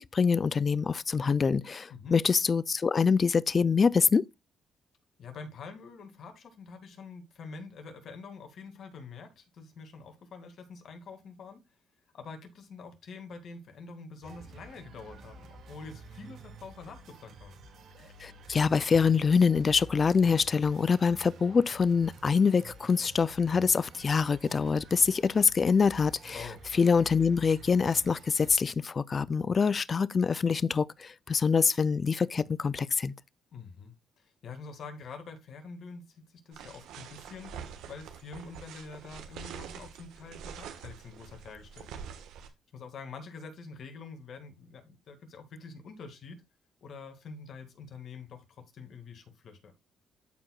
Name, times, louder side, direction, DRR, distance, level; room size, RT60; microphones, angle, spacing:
voice 1, 0.0-4.3 18.2-26.5 26.7-33.1, left 5 dB, 40° left, 0.4 m, -25 dB
voice 2, 5.2-11.6 12.1-17.5 26.3-26.6 33.5-42.1 42.7-46.4 46.8-49.7, left 4 dB, 60° left, 2.2 m, -46 dB
sound 1, 14.2-28.5, right 2 dB, 70° right, 2.1 m, -50 dB
sound 2, 36.5-42.5, right 7 dB, 90° right, 1.3 m, -45 dB
13.0 x 4.8 x 2.3 m
cardioid pair, 90°, 0 cm